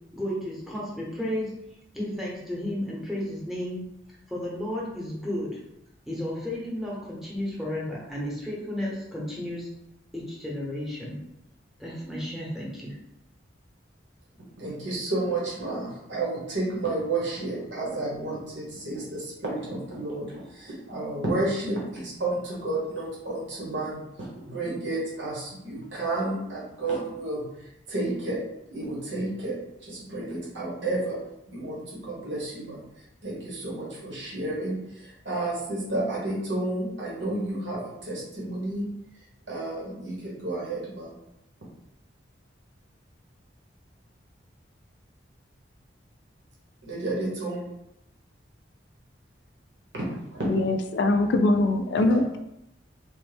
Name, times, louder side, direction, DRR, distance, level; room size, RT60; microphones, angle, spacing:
voice 1, 0.1-1.5 1.9-3.8 4.1-5.6 6.1-9.7 10.1-11.2 11.8-13.0, left 1 dB, ahead, -5 dB, 0.7 m, -33 dB
voice 2, 14.6-27.5 27.9-28.4 28.7-29.6 29.8-31.2 31.5-32.8 33.2-38.9 39.5-41.2 46.8-47.6 49.9-50.0 50.3-50.5 52.1-52.2, right 2 dB, 80° right, -5 dB, 1.0 m, -31 dB
voice 3, 50.5-52.4, left 2 dB, 65° left, 7 dB, 0.3 m, -22 dB
3.5 x 2.1 x 3.2 m, 0.83 s
head